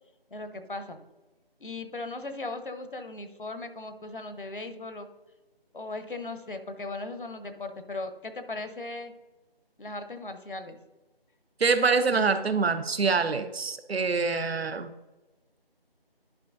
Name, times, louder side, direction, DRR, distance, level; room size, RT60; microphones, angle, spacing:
voice 1, 0.3-1.0 1.6-5.1 5.7-9.1 9.8-10.8, left 2 dB, 55° left, 9 dB, 0.8 m, -38 dB
voice 2, 11.6-14.9, right 4 dB, 80° right, 11 dB, 0.7 m, -25 dB
11.5 x 5.1 x 2.6 m, 1.1 s
figure-of-eight pair, 175°, 30 cm